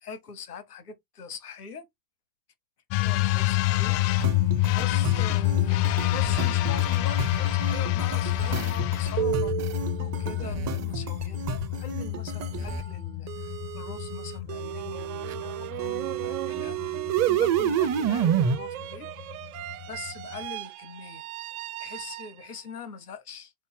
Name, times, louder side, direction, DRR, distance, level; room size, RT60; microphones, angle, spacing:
voice 1, 0.0-1.9 3.0-4.0 4.7-9.5 10.0-19.1 19.9-21.3 21.8-23.5, left 5 dB, 90° left, 0.9 m, -42 dB
sound 1, 2.9-20.4, left 15 dB, 40° left, 0.4 m, -28 dB
sound 2, 4.2-12.9 13.3-18.6, right 8 dB, 35° right, 0.8 m, -30 dB
sound 3, 14.5-22.7, right 15 dB, 65° right, 0.5 m, -39 dB
4.0 x 3.2 x 3.7 m
figure-of-eight pair, 70°, 45 cm